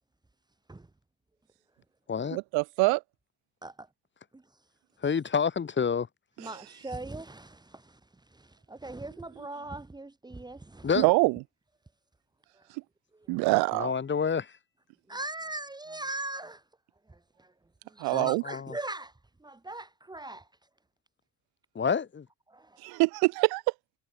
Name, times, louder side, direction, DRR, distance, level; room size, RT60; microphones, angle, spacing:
voice 1, 2.3-3.0 11.0-11.4 13.3-13.9 18.0-18.4 22.8-23.6, right 26 dB, 70° right, 2.8 m, -24 dB
voice 2, 5.0-6.1 10.8-11.1 13.7-14.5 18.1-18.7 21.7-22.3, left 6 dB, 30° left, 7.5 m, -28 dB
voice 3, 6.8-7.2 8.8-10.1 10.4-10.6 15.1-16.5 18.1-19.0 19.7-19.8 20.1-20.4, right 2 dB, 10° right, 3.1 m, -37 dB
supercardioid pair, 100°, 39 cm